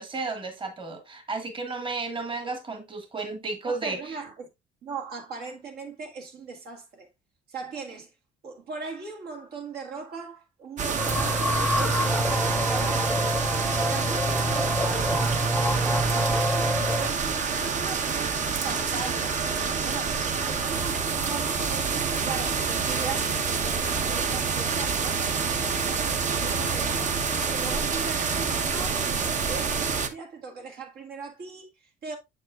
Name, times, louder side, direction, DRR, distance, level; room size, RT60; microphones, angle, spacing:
voice 1, 0.0-4.1, right 3 dB, 30° right, 1.6 m, -33 dB
voice 2, 3.6-4.5 4.8-7.1 7.5-8.1 8.4-13.5 13.8-15.3 15.6-16.7 16.9-25.3 25.9-32.2, right 5 dB, 70° right, 1.8 m, -39 dB
sound 1, 10.8-30.1, right 5 dB, 45° right, 0.9 m, -27 dB
sound 2, 11.0-17.2, equal, ahead, 0.3 m, -26 dB
sound 3, 23.6-29.4, right 3 dB, 90° right, 3.3 m, -47 dB
7.7 x 7.0 x 2.4 m
cardioid pair, 110°, 17 cm